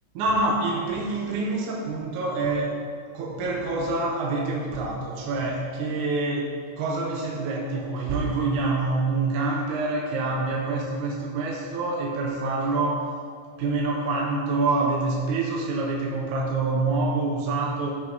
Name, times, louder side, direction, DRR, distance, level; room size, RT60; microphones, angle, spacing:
voice 1, 0.2-2.8 3.1-13.2 13.6-17.9, right 3 dB, 70° right, -1 dB, 2.1 m, -26 dB
12.5 x 6.2 x 4.0 m, 2.1 s
omnidirectional pair, 4.0 m